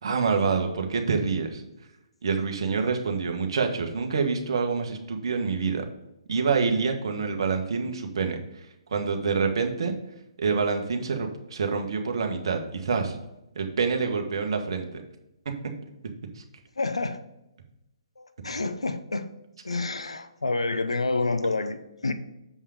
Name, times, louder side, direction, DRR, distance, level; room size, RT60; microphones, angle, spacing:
voice 1, 0.0-1.6 2.2-5.8 6.3-9.9 10.4-13.2 13.5-14.9, right 5 dB, 60° right, 4 dB, 1.5 m, -27 dB
voice 2, 16.8-17.2 18.2-19.3 19.6-22.1, left 3 dB, 80° left, 10 dB, 0.8 m, -28 dB
7.0 x 5.5 x 5.0 m, 0.89 s
figure-of-eight pair, 130°, 3 cm